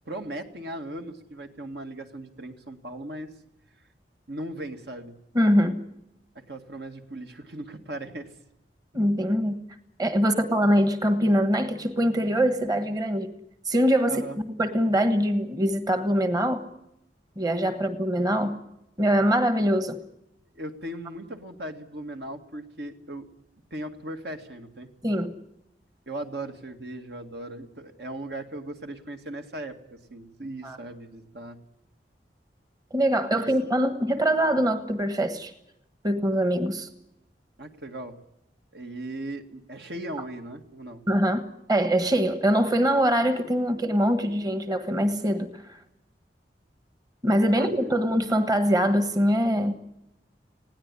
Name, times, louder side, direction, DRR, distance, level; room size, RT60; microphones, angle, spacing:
voice 1, 0.1-3.3 4.3-5.2 6.5-8.3 14.1-14.4 20.5-23.3 23.7-24.9 26.1-31.6 33.3-33.5 37.6-38.2 38.7-41.0 47.4-48.0, right 1 dB, 70° right, 5 dB, 2.1 m, -38 dB
voice 2, 5.3-5.7 8.9-9.6 10.0-13.3 13.6-14.2 14.6-16.6 17.4-18.5 19.0-20.0 25.0-25.3 30.6-30.8 32.9-35.5 36.0-36.9 41.1-41.4 41.7-45.6 47.2-49.8, equal, 20° right, 9 dB, 1.3 m, -23 dB
20.5 x 17.0 x 9.9 m, 0.82 s
head